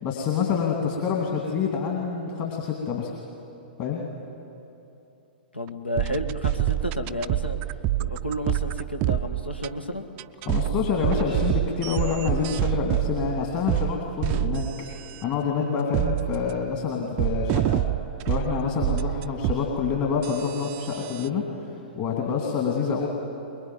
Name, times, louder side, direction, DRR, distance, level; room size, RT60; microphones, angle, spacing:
voice 1, 0.0-3.1 3.8-4.0 10.4-14.9 15.2-17.8 18.3-21.7 22.0-23.1, left 6 dB, 35° left, -1 dB, 2.7 m, -27 dB
voice 2, 5.5-7.7 8.0-10.1, left 1 dB, 85° left, 5 dB, 1.9 m, -31 dB
sound 1, 5.7-5.8 6.0-9.7 10.2-15.2 15.9-16.6 17.2-21.3, right 14 dB, 30° right, 0.5 m, -27 dB
23.0 x 22.0 x 9.2 m, 3.0 s
figure-of-eight pair, 110°, 6 cm